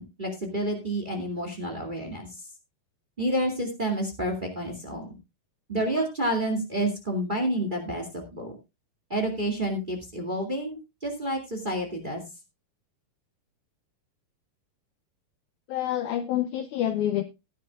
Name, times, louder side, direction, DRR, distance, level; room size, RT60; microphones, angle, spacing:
voice 1, 0.0-2.3 3.2-5.1 5.7-8.5 9.1-12.2, right 1 dB, 15° right, 3 dB, 1.8 m, -29 dB
voice 2, 15.7-17.2, left 11 dB, 85° left, 10 dB, 1.7 m, -27 dB
17.0 x 9.9 x 2.4 m, 0.24 s
omnidirectional pair, 4.4 m